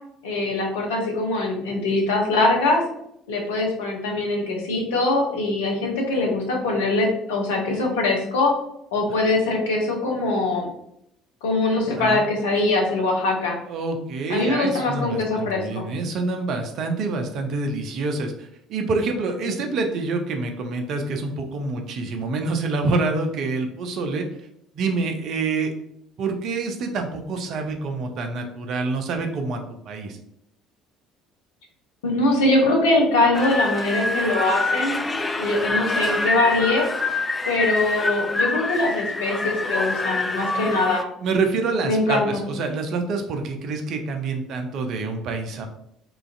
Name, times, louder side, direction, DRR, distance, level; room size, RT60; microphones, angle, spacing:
voice 1, 0.2-2.8 3.3-8.5 8.9-10.7 11.4-13.6 14.3-15.9 19.4-19.6 32.0-35.0 35.4-36.9 37.5-41.0 41.8-42.4, left 2 dB, 70° left, 0 dB, 0.7 m, -22 dB
voice 2, 13.7-24.3 24.7-25.7 26.2-29.6 29.9-30.2 41.2-45.7, right 3 dB, 55° right, 5 dB, 0.5 m, -27 dB
sound 1, 33.3-41.0, left 2 dB, 20° left, 0.3 m, -25 dB
3.0 x 2.4 x 2.5 m, 0.76 s
figure-of-eight pair, 55°, 0 cm